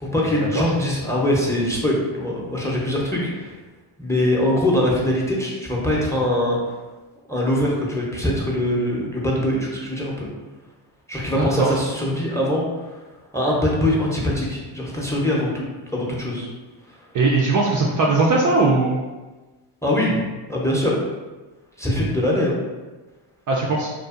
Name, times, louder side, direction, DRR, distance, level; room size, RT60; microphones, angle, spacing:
voice 1, 0.0-3.5 4.0-6.6 7.3-10.3 11.1-13.0 13.3-15.6 15.9-16.5 16.9-17.0 19.8-20.2 20.5-21.0 21.8-22.6, left 1 dB, 5° left, -3 dB, 0.6 m, -22 dB
voice 2, 11.4-11.8 17.1-19.0 23.5-23.9, right 3 dB, 40° right, -2 dB, 0.4 m, -19 dB
2.6 x 2.4 x 2.4 m, 1.2 s
supercardioid pair, 60°, 50 cm